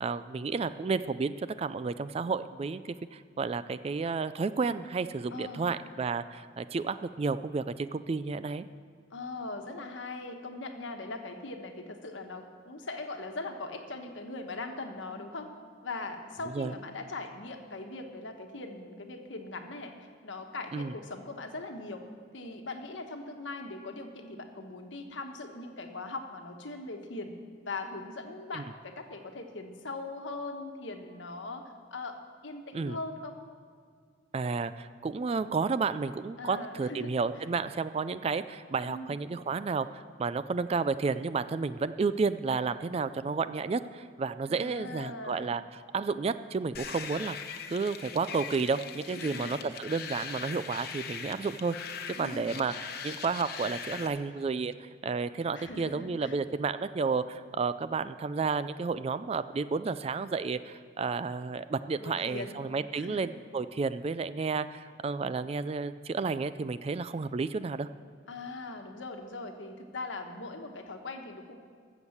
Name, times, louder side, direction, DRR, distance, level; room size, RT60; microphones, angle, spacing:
voice 1, 0.0-8.6 16.5-16.7 20.7-20.9 28.5-28.6 32.7-33.0 34.3-51.8 52.2-67.9, right 4 dB, 30° right, 14 dB, 0.3 m, -31 dB
voice 2, 5.3-5.7 9.1-15.5 15.8-19.9 20.2-22.0 22.3-27.3 27.6-31.6 31.9-32.2 32.4-33.4 36.4-37.2 38.8-39.2 44.5-45.5 49.2-49.6 52.1-52.6 55.5-56.4 62.0-62.6 62.9-63.3 68.3-71.6, left 2 dB, 75° left, 5 dB, 1.2 m, -40 dB
sound 1, 46.7-54.1, left 7 dB, 55° left, 0.9 m, -41 dB
14.5 x 7.2 x 7.1 m, 2.1 s
head